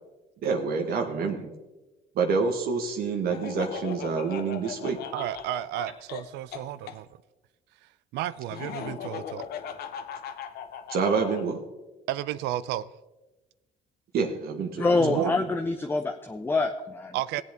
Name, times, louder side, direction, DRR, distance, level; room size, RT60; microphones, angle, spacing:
voice 1, 0.4-1.5 2.1-5.0 10.9-11.6 14.1-15.4, right 5 dB, 65° right, 3 dB, 1.2 m, -27 dB
Laughter, 3.3-7.0 8.5-11.4, left 8 dB, 70° left, 0.9 m, -38 dB
voice 2, 5.1-7.1 8.1-9.4 12.1-12.9 15.0-15.3 17.1-17.4, right 13 dB, 85° right, 16 dB, 0.4 m, -32 dB
voice 3, 14.8-17.2, left 3 dB, 10° left, 6 dB, 0.6 m, -26 dB
17.0 x 8.0 x 3.5 m, 1.1 s
cardioid pair, 110°, 17 cm